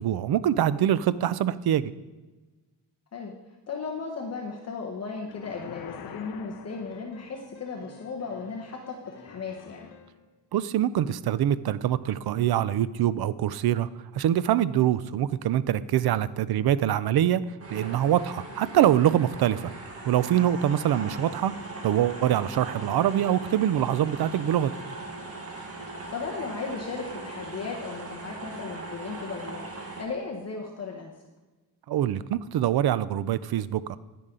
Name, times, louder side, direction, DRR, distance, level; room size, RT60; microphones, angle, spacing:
voice 1, 0.0-1.9 10.5-19.7 20.0-24.7 31.9-34.0, right 11 dB, 65° right, 16 dB, 0.5 m, -24 dB
voice 2, 3.7-9.8 20.7-20.9 26.1-29.7 30.0-31.1, left 4 dB, 40° left, 0 dB, 1.0 m, -36 dB
sound 1, 5.2-7.5, left 8 dB, 60° left, 0.7 m, -44 dB
sound 2, 6.7-10.3, left 4 dB, 80° left, 1.1 m, -51 dB
sound 3, 17.6-30.0, right 2 dB, 35° right, 1.7 m, -39 dB
10.5 x 10.5 x 3.7 m, 1.2 s
wide cardioid pair, 165°, 41 cm